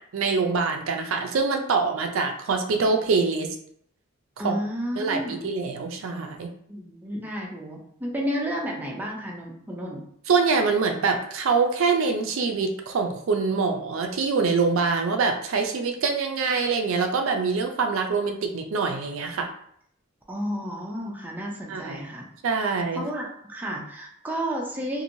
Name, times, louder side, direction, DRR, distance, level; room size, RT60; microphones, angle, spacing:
voice 1, 0.1-3.5 4.4-4.6 5.0-6.5 10.3-19.5 21.7-22.0 22.4-23.0, right 4 dB, 75° right, 4 dB, 0.4 m, -24 dB
voice 2, 4.4-5.5 6.7-10.1 20.3-22.3 22.6-25.0, equal, 10° right, -2 dB, 0.5 m, -32 dB
3.0 x 2.5 x 2.6 m, 0.67 s
head